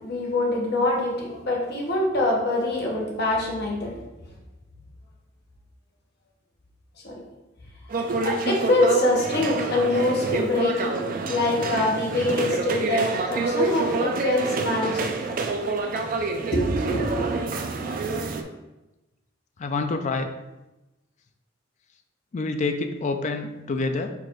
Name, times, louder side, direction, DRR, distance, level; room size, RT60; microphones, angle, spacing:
voice 1, 0.0-4.0 7.0-7.2 8.2-15.3 16.5-17.3, left 1 dB, 55° left, -2 dB, 1.1 m, -24 dB
sound 1, 7.9-18.4, right 3 dB, 45° right, 0.4 m, -27 dB
voice 2, 19.6-20.3 22.3-24.1, left 3 dB, 40° left, 7 dB, 0.4 m, -27 dB
4.6 x 2.5 x 4.5 m, 1.0 s
head